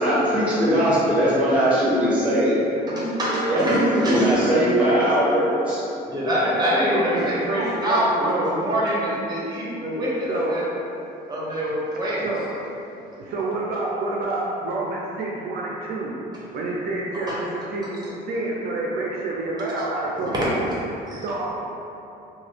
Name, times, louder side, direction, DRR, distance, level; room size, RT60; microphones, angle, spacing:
voice 1, 0.0-2.7 3.5-5.8 6.9-7.1, equal, 5° right, -9 dB, 1.1 m, -20 dB
voice 2, 2.9-4.3 6.1-10.7 11.3-12.3 17.3-17.4 20.3-20.5 21.1-21.2, equal, 25° right, -6 dB, 0.8 m, -24 dB
voice 3, 6.9-8.5 10.3-10.6 12.2-12.5 13.2-16.1 16.5-20.7 21.2-21.5, right 2 dB, 65° right, -3 dB, 0.4 m, -28 dB
2.9 x 2.3 x 3.1 m, 2.9 s
cardioid pair, 110°, 17 cm